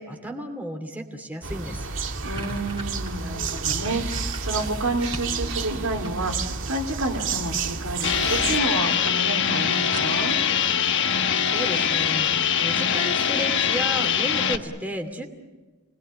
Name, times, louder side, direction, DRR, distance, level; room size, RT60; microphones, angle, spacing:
voice 1, 0.0-1.9 10.9-15.2, equal, 10° right, 3 dB, 2.6 m, -33 dB
sound 1, 1.4-8.6, right 4 dB, 65° right, 2.0 m, -30 dB
voice 2, 2.2-10.4, right 2 dB, 85° right, 1 dB, 3.5 m, -29 dB
sound 2, 2.3-5.4 5.7-6.6 7.7-8.1 8.5-8.6 8.9-9.0 9.3-9.4 9.9-10.5, right 2 dB, 25° right, 3.2 m, -39 dB
sound 3, 8.0-14.6, left 8 dB, 60° left, 1.3 m, -23 dB
29.5 x 20.5 x 8.8 m, 1.3 s
head